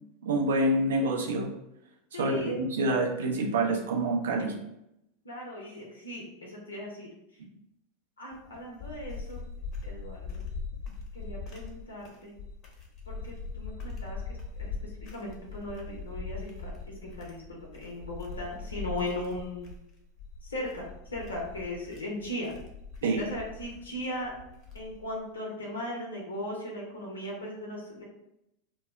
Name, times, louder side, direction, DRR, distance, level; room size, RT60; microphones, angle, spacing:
voice 1, 0.2-1.5 2.2-4.6 23.0-23.2, right 2 dB, 70° right, 0 dB, 0.5 m, -27 dB
voice 2, 2.1-2.5 5.2-7.4 8.2-9.4 9.8-10.4 11.1-12.4 13.1-19.7 20.4-22.5 23.1-24.3 24.7-28.0, left 1 dB, 80° left, -2 dB, 0.6 m, -38 dB
sound 1, 8.3-25.2, left 4 dB, 40° left, 0.7 m, -41 dB
2.2 x 2.0 x 3.4 m, 0.83 s
figure-of-eight pair, 85°, 0 cm